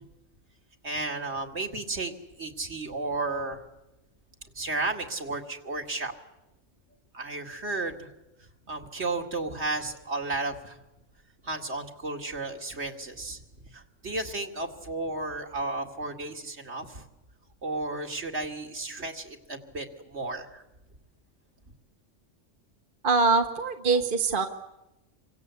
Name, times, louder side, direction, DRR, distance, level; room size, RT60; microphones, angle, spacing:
voice 1, 0.8-2.1 2.4-3.6 4.5-6.1 7.1-8.1 8.7-10.8 11.4-13.4 13.7-17.0 17.6-20.6, right 2 dB, 60° right, 2 dB, 2.6 m, -33 dB
voice 2, 23.0-24.5, right 4 dB, 45° right, 6 dB, 1.4 m, -23 dB
28.5 x 24.5 x 8.2 m, 0.95 s
omnidirectional pair, 1.3 m